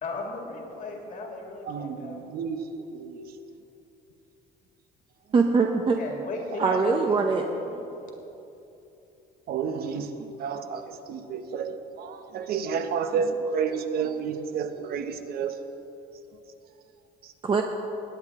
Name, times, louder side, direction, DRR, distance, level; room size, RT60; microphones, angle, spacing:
voice 1, 0.0-2.3 6.0-7.8, left 3 dB, 55° left, 1 dB, 2.2 m, -36 dB
voice 2, 1.7-3.3 6.7-6.8 9.5-15.5, right 6 dB, 65° right, 8 dB, 0.9 m, -31 dB
voice 3, 5.3-6.0 6.6-7.5 17.4-17.6, right 4 dB, 30° right, 3 dB, 0.7 m, -22 dB
20.0 x 8.8 x 3.6 m, 3.0 s
cardioid pair, 110°, 17 cm